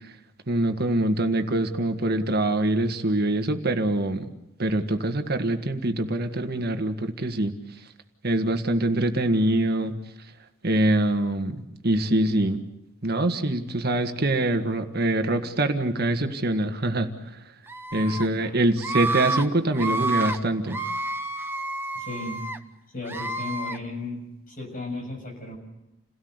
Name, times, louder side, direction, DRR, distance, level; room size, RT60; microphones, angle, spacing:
voice 1, 0.5-4.2 4.6-7.5 8.2-9.9 10.6-11.6 11.8-12.6 13.0-17.1 17.9-20.8, right 1 dB, 50° right, 6 dB, 1.7 m, -24 dB
Screaming, 17.7-18.3 18.8-19.4 19.7-20.4 20.7-22.6 23.1-23.8, right 2 dB, 10° right, 1.1 m, -29 dB
voice 2, 18.0-18.5 22.0-22.4 22.9-25.6, left 2 dB, 40° left, 1 dB, 7.0 m, -35 dB
29.0 x 17.5 x 8.0 m, 0.90 s
head